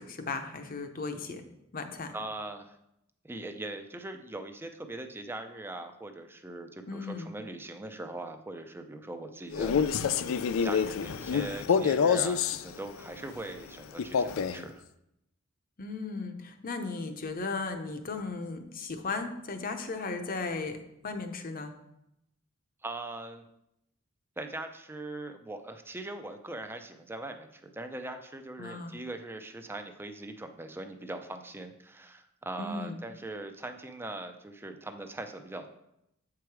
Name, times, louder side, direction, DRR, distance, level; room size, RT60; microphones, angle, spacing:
voice 1, 0.0-1.4 1.7-2.1 6.9-7.3 15.8-21.7 28.6-28.9 32.6-33.0, left 3 dB, 45° left, 6 dB, 0.8 m, -36 dB
voice 2, 2.1-2.8 3.2-9.8 10.6-14.8 22.8-23.4 24.4-35.7, right 2 dB, 10° right, 7 dB, 0.5 m, -41 dB
Male speech man speaking, 9.5-12.6 14.0-14.6, left 6 dB, 70° left, 0.4 m, -27 dB
7.9 x 4.8 x 4.7 m, 0.82 s
head